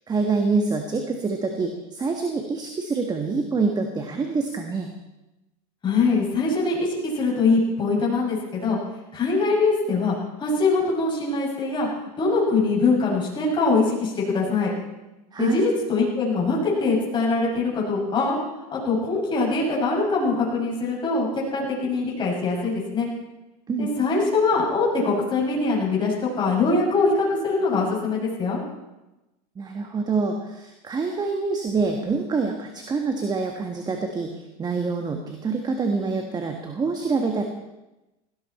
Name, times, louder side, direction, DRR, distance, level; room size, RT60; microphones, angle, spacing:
voice 1, 0.1-4.9 15.3-15.6 23.7-23.9 29.6-37.4, right 4 dB, 20° right, 4 dB, 1.7 m, -26 dB
voice 2, 5.8-8.8 9.1-11.9 12.2-14.7 15.4-18.4 18.7-23.1 23.8-28.6, left 3 dB, 25° left, -4 dB, 6.8 m, -23 dB
18.0 x 17.0 x 4.4 m, 1.0 s
supercardioid pair, 120°, 20 cm